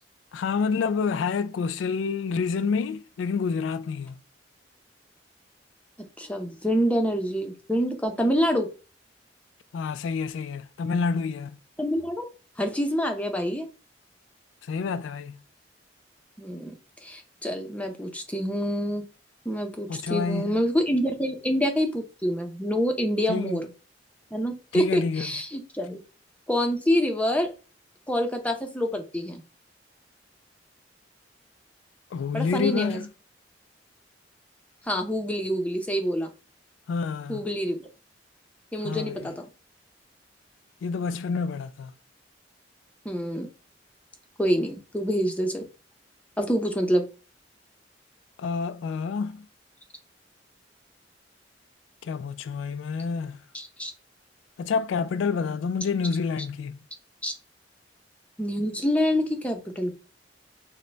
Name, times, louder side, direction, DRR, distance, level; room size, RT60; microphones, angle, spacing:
voice 1, 0.3-4.2 9.7-11.6 14.6-15.4 19.9-20.6 23.3-23.6 24.7-25.3 32.1-33.1 36.9-37.5 38.8-39.3 40.8-41.9 48.4-49.5 52.0-53.4 54.6-56.8, left 5 dB, 90° left, 0.3 m, -28 dB
voice 2, 6.2-8.7 11.8-12.2 12.6-13.7 16.4-16.7 17.0-19.0 19.5-23.7 24.3-26.0 26.5-27.5 28.1-29.4 32.3-33.0 34.8-36.3 37.3-37.9 38.7-39.5 43.0-43.5 44.4-45.6 46.4-47.0 53.5-53.9 57.2-57.3 58.4-60.0, equal, 10° left, 0.6 m, -26 dB
6.3 x 2.1 x 3.3 m
head